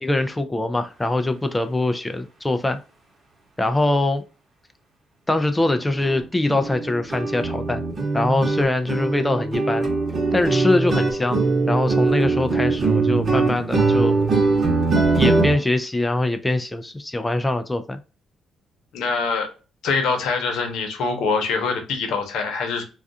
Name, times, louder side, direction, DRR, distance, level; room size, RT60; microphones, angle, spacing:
voice 1, 0.0-2.8 3.6-4.2 5.3-7.8 8.1-9.9 10.3-14.4 15.1-18.0, left 2 dB, 15° left, 0.3 m, -23 dB
sound 1, 5.6-5.7 6.0-6.2 6.5-15.5, right 3 dB, 40° right, 1.0 m, -21 dB
voice 2, 18.9-19.5 19.8-22.8, left 4 dB, 80° left, 0.8 m, -24 dB
2.3 x 2.3 x 2.5 m
cardioid pair, 90°, 0 cm